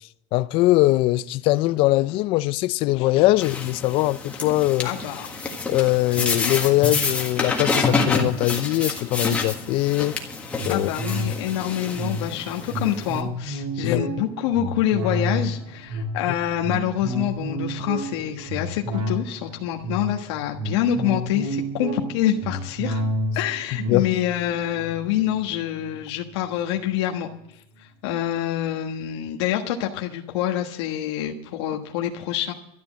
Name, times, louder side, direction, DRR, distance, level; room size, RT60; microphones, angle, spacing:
voice 1, 0.3-4.9 5.7-10.2 10.7-10.9 13.8-14.0 23.9-24.1, left 17 dB, 40° left, 0.5 m, -21 dB
sound 1, 3.4-13.2, left 3 dB, 10° left, 1.6 m, -28 dB
voice 2, 4.8-5.4 6.1-6.2 10.7-23.0 23.3-32.5, left 11 dB, 85° left, 1.4 m, -26 dB
sound 2, 10.6-26.3 26.8-26.9, equal, 40° right, 2.4 m, -31 dB
13.0 x 9.6 x 7.4 m
cardioid pair, 170°, 14 cm